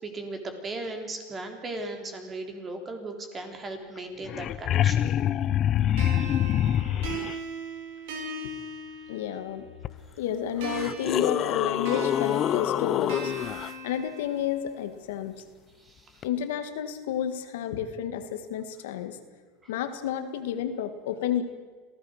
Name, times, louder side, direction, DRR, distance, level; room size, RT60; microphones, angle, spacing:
voice 1, 0.0-5.1 15.8-16.3, right 2 dB, 25° right, 5 dB, 3.5 m, -37 dB
sound 1, 4.0-4.1 4.2-7.3 9.8-9.9 10.6-13.7 16.2-16.3, left 11 dB, 40° left, 0.6 m, -26 dB
sound 2, 6.0-9.6 10.6-14.6, right 1 dB, 75° right, 4.0 m, -39 dB
voice 2, 9.1-9.6 10.2-13.3 13.8-15.3 16.2-19.2 19.7-21.4, left 9 dB, 85° left, 8 dB, 1.8 m, -31 dB
26.5 x 16.0 x 6.6 m, 1.4 s
supercardioid pair, 130°, 0 cm